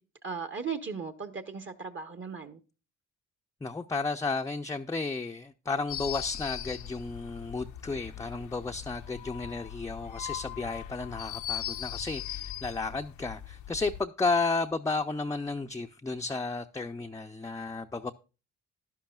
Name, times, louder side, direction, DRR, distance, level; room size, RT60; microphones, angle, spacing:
voice 1, 0.2-2.6, right 5 dB, 40° right, 1.0 m, -37 dB
voice 2, 3.6-18.1, left 3 dB, 10° left, 0.5 m, -33 dB
sound 1, 5.9-14.0, left 11 dB, 80° left, 0.7 m, -40 dB
11.5 x 11.0 x 2.3 m
cardioid pair, 90°, 30 cm